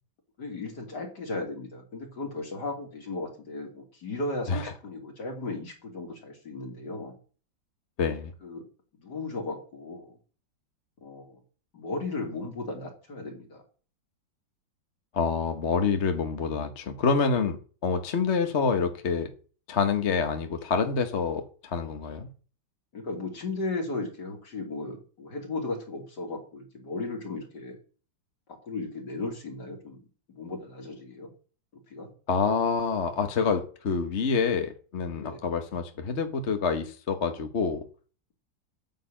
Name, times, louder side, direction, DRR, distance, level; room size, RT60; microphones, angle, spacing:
voice 1, 0.4-7.1 8.4-8.6 9.0-10.2 11.0-11.4 11.7-13.6 22.9-27.8 28.5-30.0 30.3-31.3 31.9-32.1 35.2-35.4, left 2 dB, 60° left, 3.5 m, -36 dB
voice 2, 8.0-8.3 15.1-19.3 19.7-22.3 32.3-37.9, left 5 dB, 40° left, 1.2 m, -27 dB
9.4 x 6.7 x 8.8 m
omnidirectional pair, 2.1 m